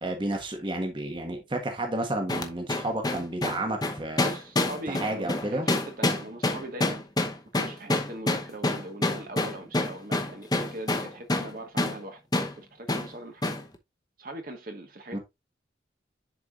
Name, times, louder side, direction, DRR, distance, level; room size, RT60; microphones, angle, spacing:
voice 1, 0.0-4.3 4.9-5.7 15.1-15.2, right 1 dB, 25° right, 1.4 m, -31 dB
sound 1, 2.3-11.5 11.8-12.0 12.3-12.5 12.9-13.1 13.4-13.6, left 2 dB, 20° left, 0.8 m, -27 dB
voice 2, 4.2-7.0 7.5-12.2 12.6-13.6 14.2-15.2, right 1 dB, 50° right, 1.4 m, -40 dB
10.5 x 4.7 x 2.5 m
head